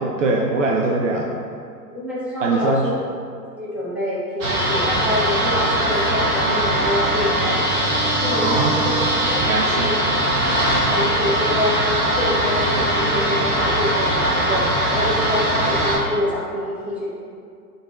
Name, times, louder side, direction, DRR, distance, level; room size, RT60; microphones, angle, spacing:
voice 1, 0.0-1.3 2.4-2.8 8.4-8.7 9.4-9.9, right 3 dB, 50° right, -1 dB, 0.7 m, -21 dB
voice 2, 1.9-2.9 3.6-7.7 8.2-9.9 10.9-14.7 14.9-17.1, left 1 dB, ahead, -9 dB, 1.3 m, -26 dB
sound 1, 4.4-16.0, right 1 dB, 25° right, 1.3 m, -20 dB
10.5 x 3.9 x 2.4 m, 2.3 s
figure-of-eight pair, 115°, 49 cm